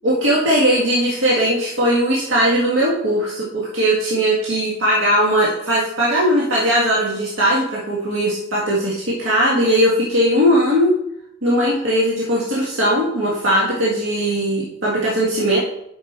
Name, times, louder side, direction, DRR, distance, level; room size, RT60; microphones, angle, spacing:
voice 1, 0.0-11.0 11.4-15.6, equal, 80° right, -5 dB, 1.7 m, -19 dB
7.5 x 5.8 x 4.3 m, 0.77 s
head